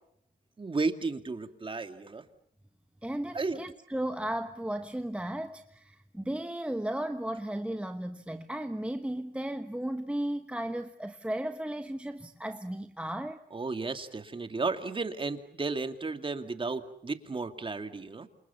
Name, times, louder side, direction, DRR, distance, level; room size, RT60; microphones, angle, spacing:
voice 1, 0.6-2.2 3.3-3.6 13.5-18.3, right 3 dB, 25° right, 2.4 m, -33 dB
voice 2, 3.0-13.4, right 1 dB, 5° right, 1.1 m, -35 dB
28.0 x 28.0 x 7.1 m
cardioid pair, 90°, 20 cm